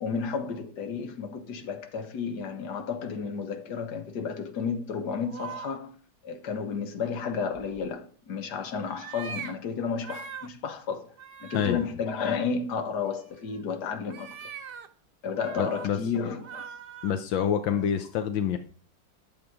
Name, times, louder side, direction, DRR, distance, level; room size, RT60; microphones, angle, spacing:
voice 1, 0.0-5.9 6.2-11.1 11.4-14.5 15.2-16.7, left 6 dB, 60° left, 1.8 m, -32 dB
sound 1, 5.0-5.8 7.4-7.9 8.8-9.5 10.0-10.5 11.1-11.9 13.3-13.6 14.1-14.9 15.3-15.9 16.4-17.1, right 7 dB, 65° right, 0.5 m, -42 dB
voice 2, 15.6-16.0 17.0-18.6, left 8 dB, 85° left, 1.5 m, -27 dB
11.0 x 7.4 x 4.9 m
omnidirectional pair, 2.1 m